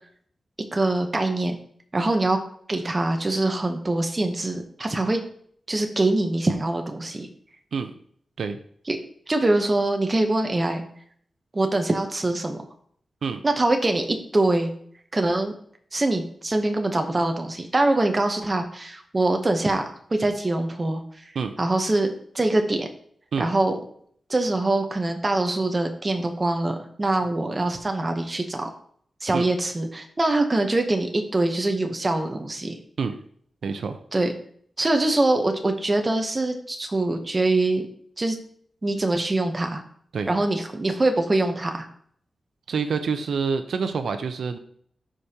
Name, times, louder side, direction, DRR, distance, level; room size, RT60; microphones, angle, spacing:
voice 1, 0.7-1.6 1.9-2.4 2.7-5.2 5.7-7.3 8.9-9.0 9.3-10.8 11.5-12.6 13.4-14.7 15.1-15.5 15.9-21.0 21.6-22.1 22.3-22.9 23.4-23.8 24.3-28.7 29.2-32.8 34.1-34.3 34.8-37.9 38.2-38.4 38.8-39.8 40.3-41.9, right 2 dB, 20° right, 4 dB, 0.8 m, -23 dB
voice 2, 33.6-34.0 40.1-40.3 42.7-44.6, right 5 dB, 80° right, 8 dB, 0.6 m, -27 dB
12.5 x 5.1 x 2.8 m, 0.62 s
wide cardioid pair, 180°, 0 cm